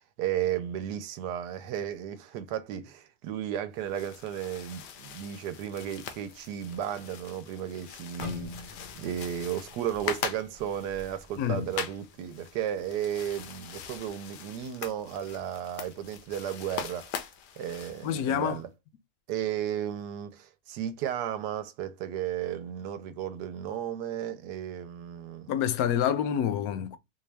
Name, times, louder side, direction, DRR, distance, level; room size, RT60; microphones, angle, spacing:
voice 1, 0.0-17.1 17.6-18.7 19.3-25.5, right 10 dB, 85° right, 1.2 m, -34 dB
sound 1, 3.7-18.6, left 8 dB, 90° left, 1.2 m, -42 dB
sound 2, 8.2-12.2 12.6-12.9 13.5-13.8, left 1 dB, 45° left, 0.4 m, -44 dB
voice 2, 11.4-11.7 18.0-18.6 25.5-27.0, left 9 dB, 70° left, 1.0 m, -27 dB
4.0 x 2.3 x 3.3 m
omnidirectional pair, 1.8 m